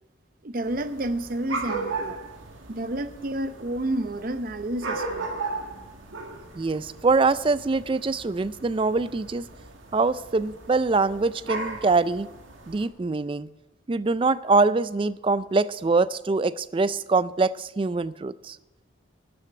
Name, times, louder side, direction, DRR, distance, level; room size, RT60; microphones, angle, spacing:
voice 1, 0.4-2.2 2.7-5.3, right 1 dB, 45° right, 11 dB, 0.7 m, -30 dB
sound 1, 0.6-12.9, right 3 dB, 85° right, 1.9 m, -37 dB
voice 2, 6.5-9.5 9.9-12.3 12.7-13.5 13.9-18.6, right 3 dB, 25° right, 16 dB, 0.3 m, -24 dB
12.5 x 7.8 x 7.5 m, 1.0 s
head